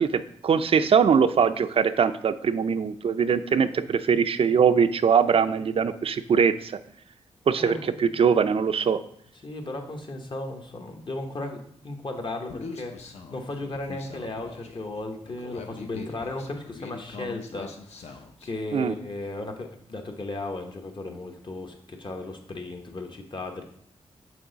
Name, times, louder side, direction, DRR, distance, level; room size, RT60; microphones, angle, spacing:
voice 1, 0.0-6.7 7.5-9.0 18.7-18.9, right 6 dB, 55° right, 12 dB, 0.4 m, -22 dB
voice 2, 7.6-8.2 9.4-23.6, left 2 dB, 45° left, 4 dB, 1.0 m, -36 dB
Human voice, 12.5-18.5, left 4 dB, 70° left, 0.7 m, -42 dB
6.1 x 3.9 x 3.9 m, 0.66 s
cardioid pair, 60°, 12 cm